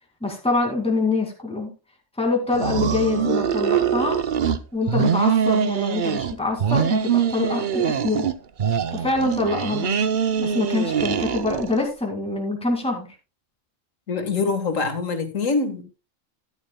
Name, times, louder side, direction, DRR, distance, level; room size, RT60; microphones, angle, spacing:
voice 1, 0.2-1.7 2.2-4.2 4.7-8.3 8.9-10.0 10.4-13.1, left 3 dB, 5° left, 1 dB, 2.2 m, -25 dB
sound 1, 2.5-4.6 4.9-6.3 6.6-8.3 8.6-11.8, right 7 dB, 50° right, 0.7 m, -23 dB
voice 2, 14.1-15.8, left 4 dB, 80° left, 8 dB, 2.0 m, -24 dB
13.0 x 10.5 x 2.2 m, 0.28 s
omnidirectional pair, 1.3 m